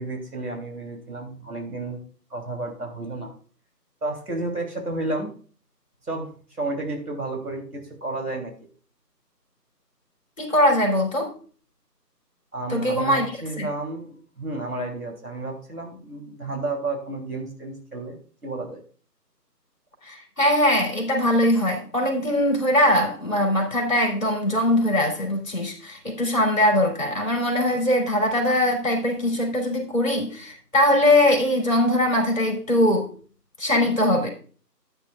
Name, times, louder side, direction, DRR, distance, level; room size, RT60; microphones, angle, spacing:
voice 1, 0.0-2.0 2.3-3.3 4.0-5.3 6.1-6.3 6.6-8.5 12.5-18.8, right 2 dB, 65° right, 2 dB, 3.1 m, -31 dB
voice 2, 10.4-11.3 12.7-13.3 13.6-13.7 20.0-33.1 33.6-34.3, left 1 dB, 50° left, 0 dB, 3.4 m, -21 dB
14.0 x 9.0 x 2.4 m, 0.42 s
figure-of-eight pair, 165°, 49 cm